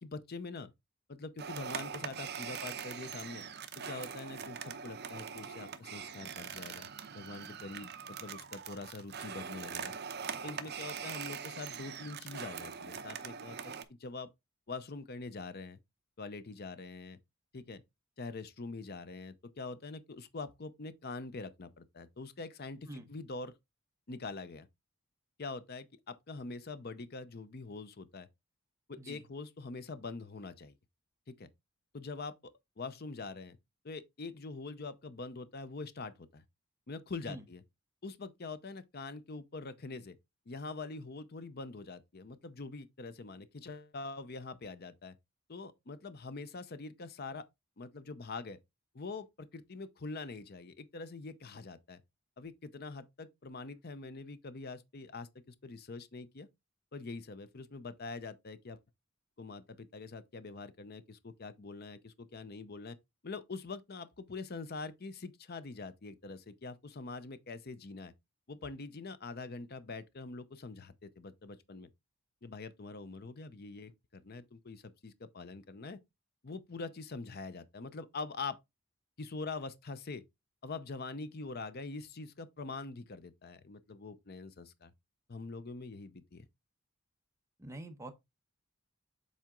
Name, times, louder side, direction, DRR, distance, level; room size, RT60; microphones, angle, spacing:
voice 1, 0.0-0.7 1.1-3.4 3.8-6.9 7.1-9.9 10.4-14.3 14.7-15.8 16.2-17.2 17.5-17.8 18.2-23.5 24.1-24.7 25.4-28.3 28.9-30.8 31.3-31.5 31.9-32.5 32.8-33.6 33.8-36.4 36.9-37.6 38.0-40.2 40.5-45.2 45.5-47.5 47.8-48.6 48.9-52.0 52.4-56.5 56.9-58.8 59.4-63.0 63.2-68.1 68.5-71.9 72.4-76.0 76.4-78.6 79.2-80.2 80.6-84.9 85.3-86.5, left 3 dB, 45° left, 0.7 m, -44 dB
sound 1, 1.4-13.8, right 7 dB, 50° right, 0.7 m, -42 dB
voice 2, 87.6-88.1, right 1 dB, 15° right, 0.9 m, -45 dB
7.5 x 4.2 x 3.7 m
head